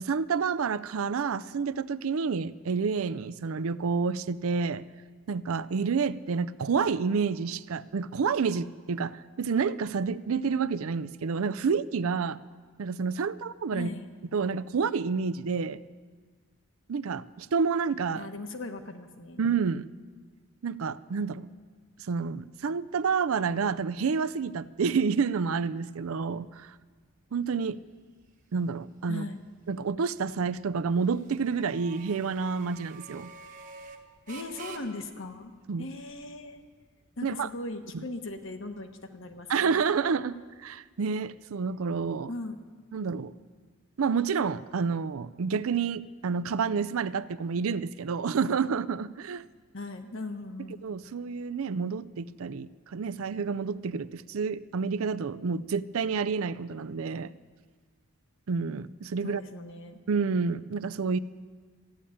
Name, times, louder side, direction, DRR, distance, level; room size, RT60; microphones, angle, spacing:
voice 1, 0.0-4.8 5.3-12.4 12.8-13.9 14.3-15.8 16.9-18.3 19.4-19.9 20.6-21.5 22.1-26.7 27.3-27.8 28.5-29.2 29.7-33.3 35.7-35.9 37.2-37.5 37.9-38.0 39.5-42.3 42.9-43.3 44.0-49.4 50.8-57.3 58.5-59.4 60.1-61.2, right 5 dB, 75° right, 16 dB, 0.5 m, -29 dB
voice 2, 13.7-14.1 18.1-19.4 29.1-29.4 34.3-35.5 35.8-36.6 37.2-39.8 42.3-42.6 49.7-50.8 59.2-60.0, left 2 dB, 60° left, 6 dB, 1.2 m, -39 dB
sound 1, 24.0-40.7, right 4 dB, 35° right, 1.2 m, -53 dB
14.5 x 10.0 x 8.5 m, 1.5 s
head